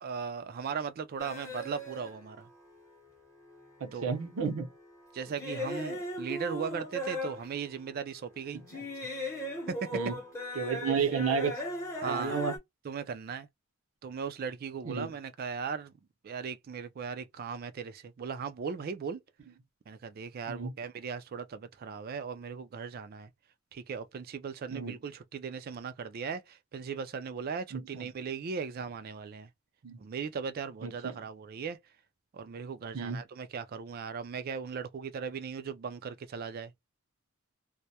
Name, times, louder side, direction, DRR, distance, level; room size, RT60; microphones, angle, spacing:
voice 1, 0.0-2.5 3.9-4.2 5.1-8.6 9.7-10.0 12.0-12.4 12.8-13.5 14.0-15.9 16.2-19.2 19.9-23.3 23.7-29.5 30.0-31.8 32.3-36.7, right 6 dB, 45° right, 0.3 m, -38 dB
sound 1, 1.2-3.0 3.4-7.9 8.5-12.6, left 1 dB, 15° left, 0.8 m, -38 dB
voice 2, 3.8-4.7 8.7-8.8 9.9-10.1 10.5-11.5 12.1-12.5 14.9-15.1 20.5-20.7 24.7-25.0 27.7-28.1 29.8-30.0 30.8-31.2 32.9-33.2, right 6 dB, 80° right, 0.7 m, -32 dB
2.2 x 2.0 x 2.7 m
head